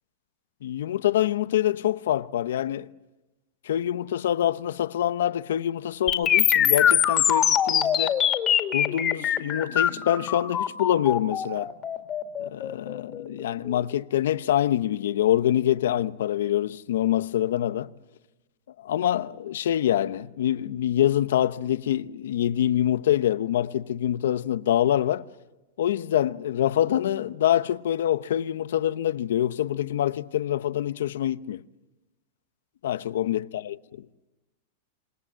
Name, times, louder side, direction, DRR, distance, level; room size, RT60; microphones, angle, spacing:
voice 1, 0.6-2.9 3.6-8.1 8.7-11.7 12.4-17.9 18.8-25.3 25.8-31.6 32.8-33.7, left 11 dB, 85° left, 0.9 m, -25 dB
sound 1, 6.1-14.0, left 9 dB, 20° left, 2.2 m, -23 dB
27.5 x 27.0 x 7.6 m
supercardioid pair, 165°, 0 cm